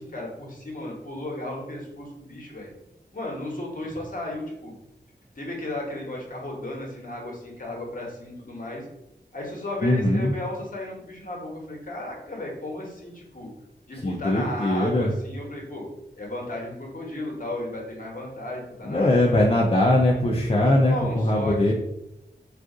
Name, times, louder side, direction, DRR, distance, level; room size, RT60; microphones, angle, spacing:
voice 1, 0.0-2.7 3.1-4.8 5.3-8.8 9.3-13.5 13.9-15.9 16.2-19.2 20.6-21.7, left 1 dB, 50° left, -2 dB, 1.1 m, -34 dB
voice 2, 9.8-10.3 14.0-15.1 18.9-21.7, left 1 dB, 35° left, -2 dB, 0.5 m, -21 dB
2.4 x 2.4 x 3.7 m, 0.87 s
wide cardioid pair, 65°, 18 cm